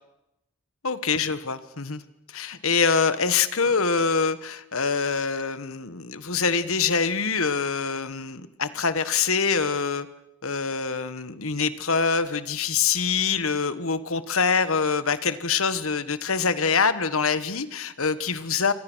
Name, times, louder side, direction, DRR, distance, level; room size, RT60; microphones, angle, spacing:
voice 1, 0.8-2.0 2.3-10.1 10.4-18.7, left 5 dB, 70° left, 13 dB, 1.5 m, -25 dB
28.5 x 24.5 x 6.3 m, 0.84 s
head